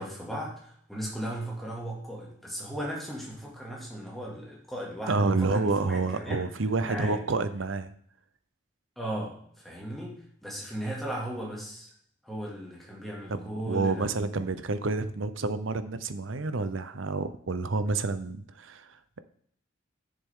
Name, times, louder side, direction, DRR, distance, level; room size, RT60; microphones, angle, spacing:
voice 1, 0.0-6.5 6.8-7.2 9.0-11.9 12.2-14.1, right 1 dB, ahead, -4 dB, 2.3 m, -37 dB
voice 2, 5.1-7.9 13.3-19.2, right 3 dB, 75° right, 12 dB, 0.7 m, -29 dB
10.0 x 7.5 x 3.7 m, 0.63 s
head